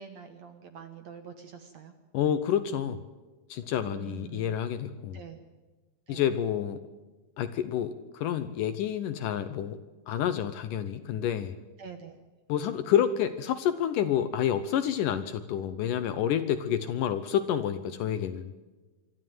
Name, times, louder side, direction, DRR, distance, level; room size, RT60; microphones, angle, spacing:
voice 1, 0.0-1.9 3.9-4.6 5.1-5.4 6.1-6.3 11.8-12.2, right 7 dB, 60° right, 7 dB, 2.0 m, -45 dB
voice 2, 2.1-3.0 3.5-5.2 6.1-6.8 7.4-9.8 10.1-11.6 12.5-18.5, left 9 dB, 75° left, 11 dB, 2.2 m, -29 dB
25.0 x 12.5 x 9.3 m, 1.2 s
omnidirectional pair, 4.4 m